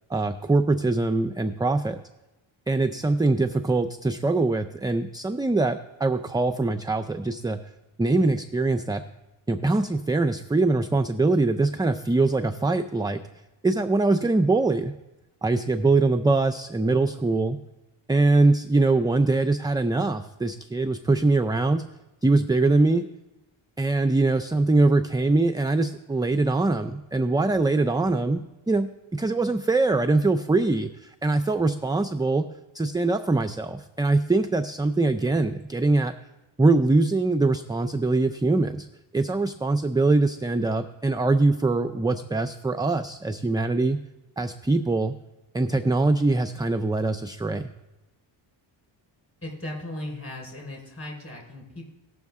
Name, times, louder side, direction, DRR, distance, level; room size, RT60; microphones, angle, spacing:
voice 1, 0.1-2.0 2.7-7.6 8.0-9.0 9.5-13.2 13.6-14.9 15.4-17.6 18.1-21.8 22.2-23.1 23.8-32.5 32.7-36.1 36.6-38.9 39.1-44.0 44.4-45.2 45.5-47.7, right 3 dB, 10° right, 8 dB, 0.3 m, -23 dB
voice 2, 49.4-51.9, left 1 dB, 25° left, 0 dB, 4.4 m, -37 dB
18.5 x 6.3 x 3.6 m, 1.0 s
cardioid pair, 95°, 49 cm